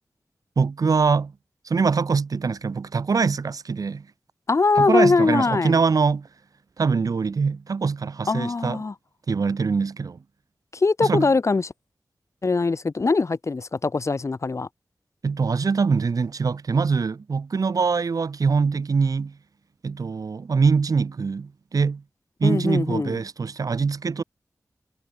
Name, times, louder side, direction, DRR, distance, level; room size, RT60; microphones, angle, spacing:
voice 1, 0.6-1.3 1.7-4.1 4.8-6.3 6.8-8.8 9.3-10.2 11.0-11.3 15.2-19.3 19.8-22.0 22.4-24.2, right 5 dB, 80° right, 1.9 m, -23 dB
voice 2, 4.5-5.8 8.3-8.9 10.7-11.7 12.4-14.7 22.4-23.2, left 3 dB, 55° left, 1.6 m, -22 dB
wide cardioid pair, 75°, 6 cm